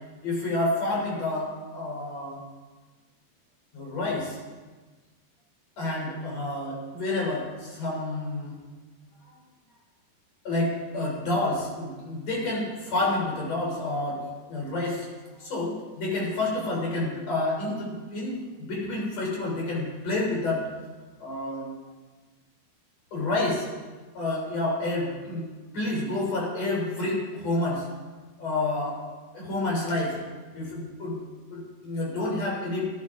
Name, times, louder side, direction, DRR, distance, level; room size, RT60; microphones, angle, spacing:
voice 1, 0.2-2.4 3.7-4.4 5.8-8.6 10.4-15.1 15.4-20.6 21.2-21.7 23.1-23.7 24.1-25.5 25.7-27.9 28.4-29.0 29.3-30.2 30.5-31.2 31.5-32.9, left 2 dB, 40° left, -3 dB, 4.0 m, -29 dB
16.5 x 10.5 x 3.7 m, 1.3 s
omnidirectional pair, 5.0 m